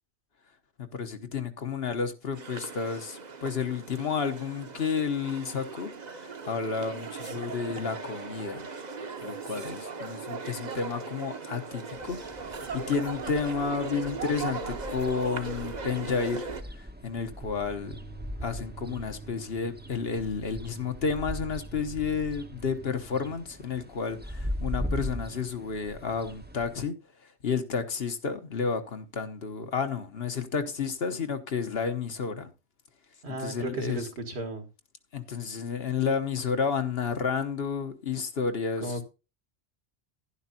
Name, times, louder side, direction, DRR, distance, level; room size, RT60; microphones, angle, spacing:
voice 1, 0.8-8.7 9.2-12.2 12.7-16.5 16.8-18.0 18.4-26.9 27.4-32.5 33.4-34.1 35.1-39.0, left 5 dB, 65° left, 1.4 m, -31 dB
sound 1, 2.3-16.6, right 5 dB, 40° right, 1.0 m, -38 dB
sound 2, 11.9-26.8, equal, 10° right, 0.7 m, -40 dB
sound 3, 17.4-23.4, right 4 dB, 85° right, 1.3 m, -47 dB
voice 2, 33.2-34.7 38.8-39.0, right 1 dB, 70° right, 1.9 m, -34 dB
11.5 x 11.0 x 2.8 m
omnidirectional pair, 1.1 m